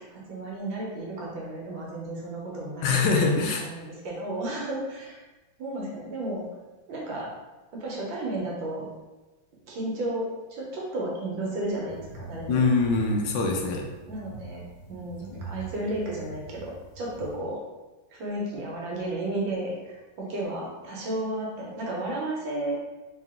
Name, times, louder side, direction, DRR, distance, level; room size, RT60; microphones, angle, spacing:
voice 1, 0.0-3.0 3.6-5.2 5.6-6.4 6.9-7.3 7.7-8.9 9.7-12.7 14.1-14.6 14.9-17.6 18.1-22.8, right 1 dB, 75° right, -4 dB, 1.7 m, -33 dB
voice 2, 2.8-3.7 12.5-13.9, left 4 dB, 75° left, 2 dB, 1.3 m, -23 dB
sound 1, 11.9-17.4, right 3 dB, 60° left, 1.3 m, -43 dB
3.8 x 2.9 x 3.5 m, 1.1 s
omnidirectional pair, 2.2 m